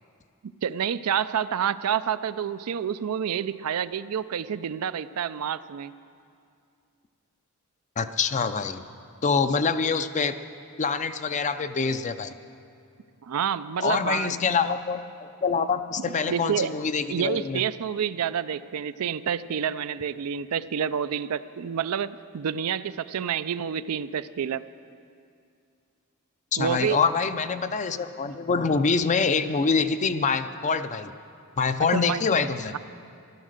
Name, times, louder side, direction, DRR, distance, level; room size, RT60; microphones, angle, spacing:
voice 1, 0.4-5.9 13.2-14.3 16.3-16.7 17.1-24.6 26.6-27.0 31.9-32.3, right 8 dB, 75° right, 14 dB, 0.4 m, -28 dB
voice 2, 8.0-8.8 9.2-10.4 10.8-12.3 13.8-17.6 26.5-31.1 31.6-32.8, left 5 dB, 35° left, 11 dB, 0.5 m, -25 dB
14.5 x 12.0 x 6.6 m, 2.4 s
head